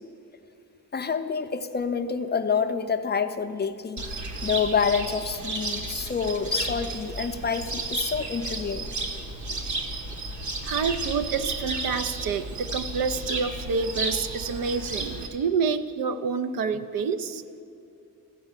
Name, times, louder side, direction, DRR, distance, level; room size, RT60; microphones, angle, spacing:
voice 1, 0.9-4.0 4.4-8.9, left 6 dB, 30° left, 8 dB, 0.5 m, -27 dB
Cricket, 4.0-15.3, right 2 dB, 55° right, 1.2 m, -33 dB
voice 2, 10.6-17.4, right 5 dB, 70° right, 11 dB, 0.6 m, -28 dB
14.5 x 4.8 x 8.1 m, 2.6 s
cardioid pair, 95°, 35 cm